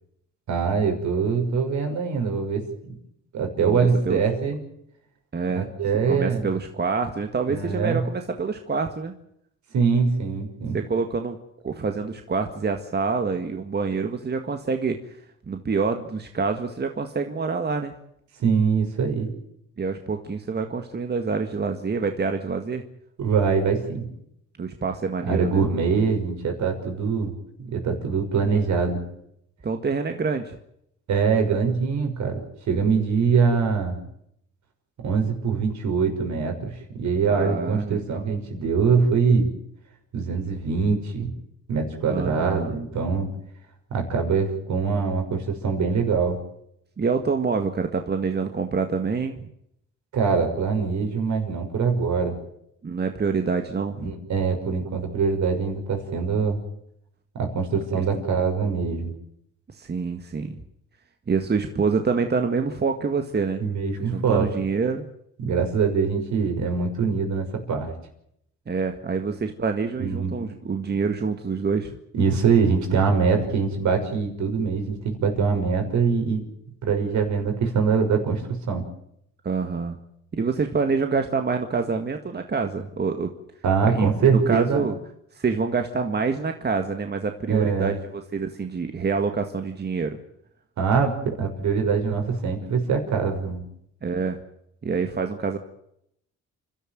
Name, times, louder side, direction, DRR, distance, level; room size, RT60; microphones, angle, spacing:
voice 1, 0.5-3.0 3.3-4.6 5.5-6.5 7.5-8.0 9.7-10.8 18.4-19.3 23.2-24.1 25.3-27.3 27.6-29.0 31.1-32.4 32.7-34.0 35.0-39.5 40.1-41.3 41.7-43.3 43.9-46.4 50.1-52.3 54.0-56.6 57.3-59.1 63.6-64.5 65.4-67.9 70.0-70.3 72.1-76.4 76.8-78.4 78.7-78.8 83.6-84.9 87.5-87.9 90.8-93.6, right 5 dB, 70° right, 4 dB, 6.0 m, -23 dB
voice 2, 5.3-5.7 6.1-9.1 10.7-11.4 11.6-15.0 15.5-17.9 19.8-22.8 24.6-25.6 29.6-30.6 37.2-38.3 42.1-42.8 47.0-49.4 52.8-54.1 59.7-60.6 61.3-63.6 64.0-65.0 68.7-72.0 79.4-80.0 80.4-83.3 83.8-84.1 84.5-84.9 85.3-90.2 94.0-94.4 94.8-95.6, right 5 dB, 35° right, 6 dB, 1.9 m, -26 dB
29.5 x 13.0 x 9.2 m, 0.75 s
cardioid pair, 90°, 30 cm